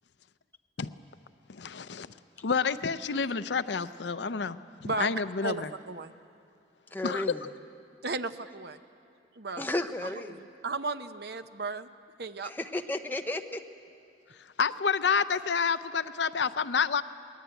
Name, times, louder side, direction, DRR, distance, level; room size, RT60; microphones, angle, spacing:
voice 1, 1.5-2.1 2.4-5.7 7.0-7.2 14.6-17.0, left 5 dB, 70° left, 12 dB, 0.6 m, -29 dB
voice 2, 5.4-6.1 8.0-8.8 9.4-9.7 10.0-11.9 12.2-12.5, right 3 dB, 60° right, 10 dB, 0.8 m, -35 dB
voice 3, 6.9-7.4 9.6-10.4 12.4-13.6, left 2 dB, 10° left, 5 dB, 0.8 m, -33 dB
22.5 x 19.0 x 9.1 m, 2.5 s
head